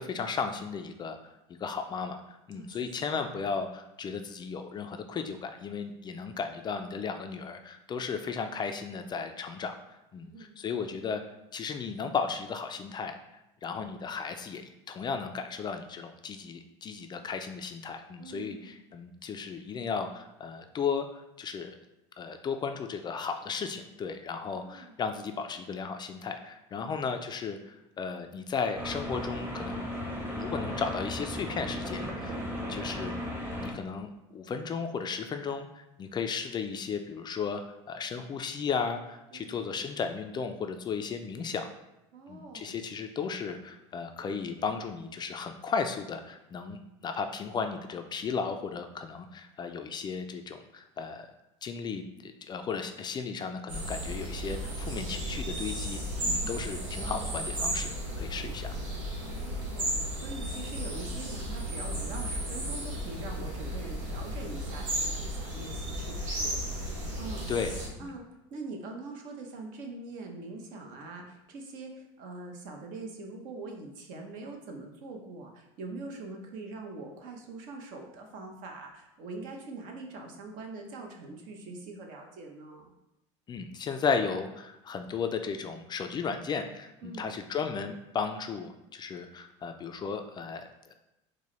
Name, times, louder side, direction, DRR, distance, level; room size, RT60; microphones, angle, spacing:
voice 1, 0.0-1.3 1.6-9.8 10.1-11.2 11.5-13.1 13.6-14.6 14.9-21.7 22.2-29.9 30.3-32.4 32.7-37.6 37.9-41.7 42.3-51.3 51.6-58.7 67.5-67.7 68.0-68.1 83.5-90.9, left 5 dB, 30° left, 7 dB, 0.3 m, -35 dB
voice 2, 10.2-10.6 18.2-18.8 24.4-25.0 26.8-27.0 39.3-39.6 42.1-42.8 56.2-56.7 59.2-66.6 67.2-67.4 68.0-68.2 68.5-82.9 87.0-87.2, right 3 dB, 60° right, 2 dB, 0.8 m, -43 dB
sound 1, 28.7-33.7, left 1 dB, 10° right, 0.9 m, -36 dB
sound 2, 53.7-67.9, right 1 dB, 85° right, 1.0 m, -34 dB
4.5 x 2.1 x 3.1 m, 0.90 s
hypercardioid pair, 90°, 16 cm